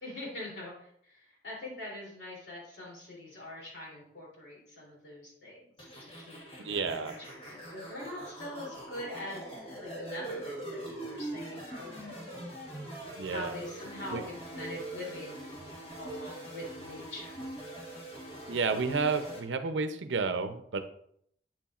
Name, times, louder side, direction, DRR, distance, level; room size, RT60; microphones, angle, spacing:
voice 1, 0.0-5.7 6.0-12.2 13.3-15.5 16.0-17.4, left 1 dB, 70° left, -4 dB, 3.1 m, -43 dB
sound 1, 5.8-19.4, right 1 dB, 30° left, 1.4 m, -43 dB
voice 2, 6.6-7.1 13.2-13.5 14.1-14.2 18.5-20.8, right 4 dB, 85° right, 9 dB, 0.6 m, -31 dB
7.9 x 7.0 x 2.4 m, 0.69 s
head